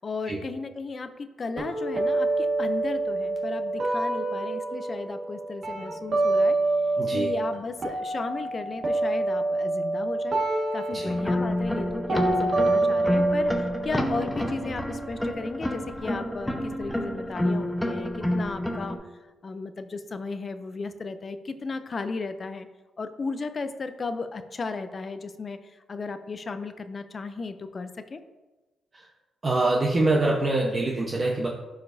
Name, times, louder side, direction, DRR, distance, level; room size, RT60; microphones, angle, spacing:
voice 1, 0.0-6.6 7.1-19.0 19.4-22.7 23.0-28.2, left 4 dB, 40° left, 9 dB, 0.5 m, -35 dB
sound 1, 1.6-7.5 7.8-15.6, right 2 dB, 50° right, 1.7 m, -27 dB
voice 2, 7.0-7.3 10.9-11.1 28.9-29.1 29.4-31.5, right 2 dB, 35° right, -2 dB, 1.0 m, -24 dB
sound 2, 11.1-19.0, left 1 dB, 5° left, 0.9 m, -29 dB
11.5 x 5.0 x 2.7 m, 1.1 s
cardioid pair, 90°, 0 cm